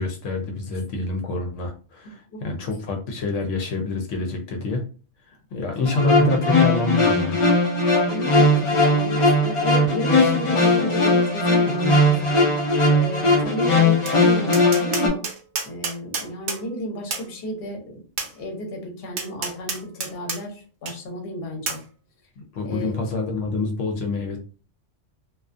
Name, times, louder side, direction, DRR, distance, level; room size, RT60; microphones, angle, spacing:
voice 1, 0.0-4.8 5.5-7.4 22.5-24.4, left 3 dB, 85° left, 3 dB, 0.9 m, -27 dB
sound 1, 5.8-15.1, left 2 dB, 40° left, 0.4 m, -19 dB
voice 2, 8.1-12.3 12.9-15.2 15.6-18.0 18.4-21.8 22.6-22.9, equal, 55° left, 1 dB, 0.9 m, -32 dB
Tap, 14.1-14.2 14.5-16.6 17.1-17.3 18.2-18.3 19.2-20.4 20.9-21.0 21.7-21.8, right 4 dB, 55° right, 0.6 m, -29 dB
2.4 x 2.3 x 2.4 m, 0.37 s
omnidirectional pair, 1.2 m